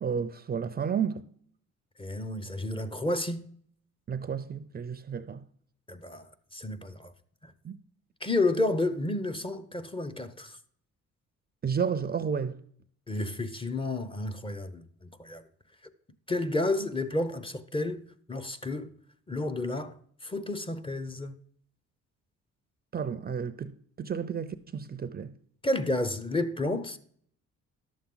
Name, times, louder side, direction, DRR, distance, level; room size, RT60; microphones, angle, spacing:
voice 1, 0.0-1.2 4.1-5.4 7.6-7.8 11.6-12.6 22.9-25.3, right 7 dB, 30° right, 0.5 m, -32 dB
voice 2, 2.0-3.4 5.9-7.1 7.4-7.5 8.2-10.6 13.1-15.4 16.3-18.0 18.3-18.9 19.3-20.0 20.2-21.4 25.6-27.0, left 2 dB, 15° left, 0.7 m, -31 dB
11.0 x 7.1 x 3.8 m
cardioid pair, 90°, 30 cm